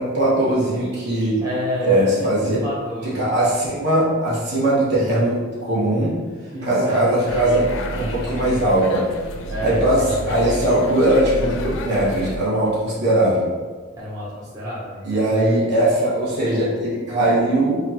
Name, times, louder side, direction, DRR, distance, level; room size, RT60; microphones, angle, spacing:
voice 1, 0.0-1.4 1.8-2.6 3.1-6.1 6.6-7.6 7.9-9.0 9.6-13.5 15.0-17.8, right 1 dB, 55° right, -7 dB, 1.2 m, -20 dB
voice 2, 1.4-3.1 6.5-7.4 9.5-10.5 14.0-15.4, equal, 15° right, -9 dB, 0.6 m, -30 dB
sound 1, 7.3-12.4, left 1 dB, 65° left, 0.4 m, -30 dB
5.0 x 2.3 x 2.8 m, 1.4 s
head